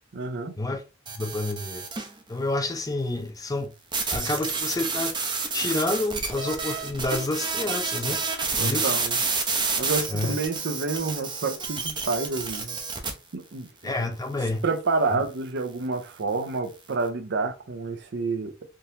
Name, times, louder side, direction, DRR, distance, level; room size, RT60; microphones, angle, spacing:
voice 1, 0.1-0.5 8.6-9.2 9.8-12.8 13.3-13.7 14.6-18.5, right 3 dB, 60° right, 0.6 m, -28 dB
sound 1, 1.1-2.1 3.9-13.1, right 4 dB, 25° right, 0.6 m, -29 dB
voice 2, 1.2-1.9 2.3-3.7 4.1-5.1 5.5-8.2 8.6-8.9 10.1-10.4 13.8-14.6 15.1-15.2, left 2 dB, 20° left, 0.5 m, -28 dB
3.7 x 2.9 x 2.6 m
head